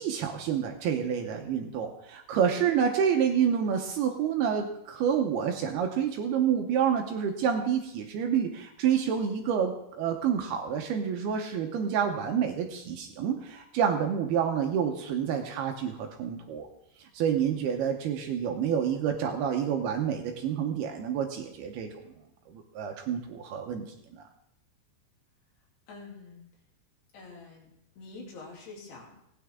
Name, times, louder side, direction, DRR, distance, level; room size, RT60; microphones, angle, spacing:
voice 1, 0.0-16.7 17.0-22.0 22.5-23.9 24.1-24.2, right 8 dB, 75° right, 3 dB, 2.6 m, -28 dB
voice 2, 25.9-26.5 27.1-29.2, left 3 dB, 65° left, -2 dB, 4.5 m, -46 dB
17.5 x 9.7 x 3.6 m, 0.78 s
omnidirectional pair, 5.2 m